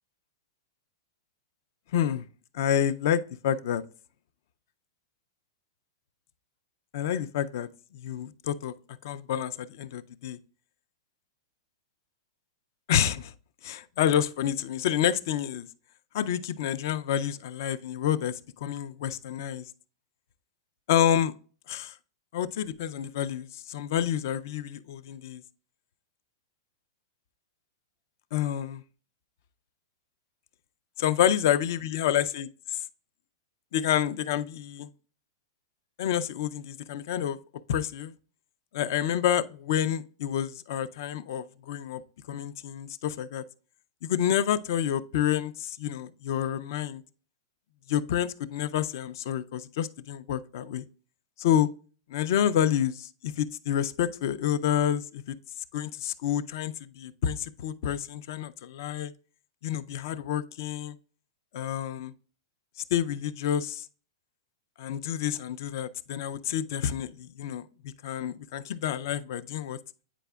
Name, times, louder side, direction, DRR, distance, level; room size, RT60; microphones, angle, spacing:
voice 1, 1.9-2.2 2.5-3.8 6.9-7.7 7.9-8.7 9.0-10.4 12.9-13.3 13.6-15.7 16.1-19.7 20.9-21.3 21.7-21.9 22.3-25.4 28.3-28.8 31.0-32.8 33.7-34.9 36.0-37.4 37.7-38.1 38.7-43.4 44.0-47.0 47.9-50.8 51.4-51.7 52.1-55.3 55.7-59.1 59.6-60.9 61.5-62.1 62.9-63.9 64.8-67.6 68.0-69.8, left 10 dB, 45° left, 0.4 m, -28 dB
9.0 x 4.9 x 2.3 m
supercardioid pair, 180°, 2 cm